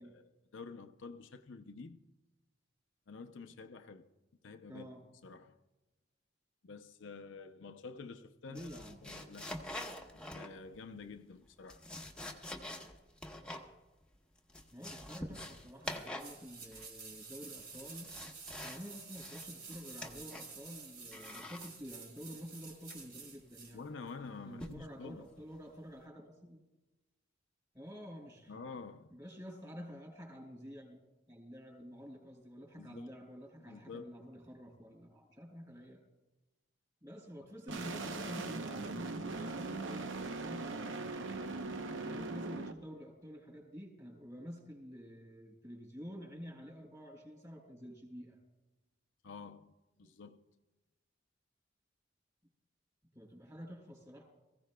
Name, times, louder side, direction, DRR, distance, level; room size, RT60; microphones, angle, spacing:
voice 1, 0.0-2.0 3.1-4.1 4.4-4.9 5.2-5.6 6.6-9.7 10.3-11.8 23.7-25.2 28.5-29.2 32.8-33.2 33.6-34.2 49.2-50.4, left 4 dB, 80° left, 0.6 m, -49 dB
voice 2, 4.7-5.0 8.5-9.0 14.7-18.1 18.6-23.8 24.4-26.6 27.7-28.6 29.1-31.0 31.3-36.0 37.0-41.2 42.0-48.4 53.1-54.2, equal, 20° right, 4.0 m, -49 dB
sound 1, 8.6-10.8 11.5-13.7 14.0-14.1 14.4-16.4 16.6-17.1 17.6-18.9 19.1-20.6 21.1-21.7 22.9-23.2 24.6-24.9 25.4-25.6, left 1 dB, 5° left, 1.0 m, -46 dB
sound 2, 15.8-23.8 24.1-24.2, right 4 dB, 60° right, 2.5 m, -50 dB
sound 3, 37.7-42.7, right 3 dB, 75° right, 0.8 m, -40 dB
23.5 x 15.5 x 2.2 m
head